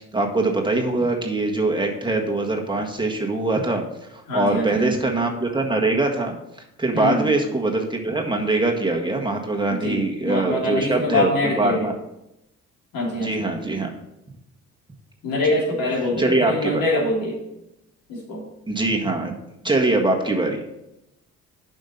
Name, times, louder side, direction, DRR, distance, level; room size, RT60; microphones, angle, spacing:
voice 1, 0.0-3.8 4.1-6.3 6.8-11.3 11.6-11.9 13.1-13.9 15.4-15.6 16.2-16.8 18.7-19.3 19.6-20.6, right 2 dB, 15° right, 1 dB, 1.6 m, -23 dB
voice 2, 4.3-4.9 6.9-7.3 9.7-11.9 12.9-13.8 15.2-17.4 18.1-18.4, left 1 dB, 75° left, -3 dB, 3.0 m, -24 dB
7.9 x 5.3 x 5.5 m, 0.87 s
supercardioid pair, 60°, 34 cm